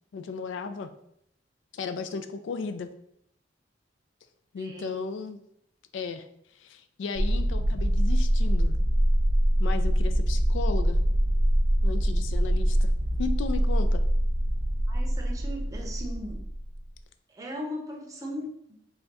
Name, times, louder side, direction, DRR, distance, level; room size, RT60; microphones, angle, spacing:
voice 1, 0.1-0.9 1.7-2.9 4.5-5.4 5.9-6.3 6.6-8.8 9.6-11.0 11.8-12.9 13.2-14.0, left 4 dB, 85° left, 9 dB, 0.3 m, -35 dB
voice 2, 4.6-5.0 14.9-16.4 17.3-18.8, equal, 20° right, 0 dB, 0.6 m, -38 dB
sound 1, 7.1-16.8, equal, 65° right, 0.6 m, -24 dB
3.5 x 2.2 x 3.9 m, 0.74 s
head